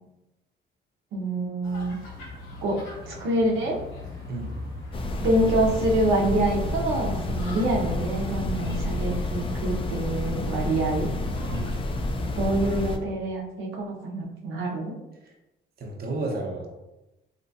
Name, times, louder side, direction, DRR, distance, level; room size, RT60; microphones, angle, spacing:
voice 1, 1.1-2.0 2.6-2.8 3.1-3.8 5.2-11.1 12.4-14.9, right 1 dB, 90° right, -2 dB, 0.7 m, -26 dB
sound 1, 1.6-12.8, left 2 dB, 90° left, 1.2 m, -38 dB
sound 2, 4.9-13.0, left 2 dB, 25° left, 0.4 m, -30 dB
voice 2, 15.8-16.8, right 2 dB, 50° right, 0 dB, 0.8 m, -32 dB
3.3 x 2.9 x 2.7 m, 0.97 s
cardioid pair, 90°, 20 cm